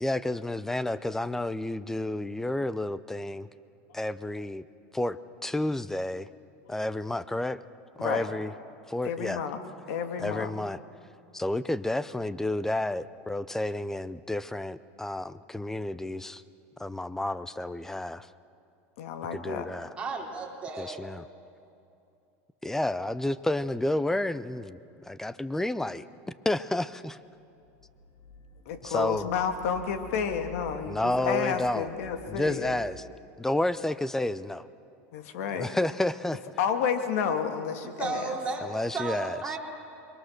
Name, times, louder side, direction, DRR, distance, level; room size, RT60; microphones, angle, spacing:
voice 1, 0.0-3.5 3.9-4.7 4.9-6.3 6.7-7.6 8.0-8.5 8.9-9.4 10.2-10.8 11.3-16.4 16.8-18.3 19.3-19.9 20.8-21.3 22.6-24.8 25.1-26.0 26.4-27.2 28.8-29.3 30.9-31.9 32.3-33.0 33.4-34.6 35.5-36.6 38.6-39.6, left 1 dB, 5° left, 16 dB, 0.6 m, -30 dB
voice 2, 9.0-9.6 9.9-10.5 19.0-19.7 28.7-32.8 35.1-35.7 36.6-38.4, left 7 dB, 75° left, 7 dB, 2.3 m, -30 dB
voice 3, 20.0-21.1 38.0-38.7 38.9-39.6, right 4 dB, 15° right, -2 dB, 3.9 m, -33 dB
sound 1, 27.3-33.0, left 4 dB, 45° left, 2.8 m, -49 dB
28.5 x 23.0 x 6.6 m, 2.6 s
supercardioid pair, 135°, 8 cm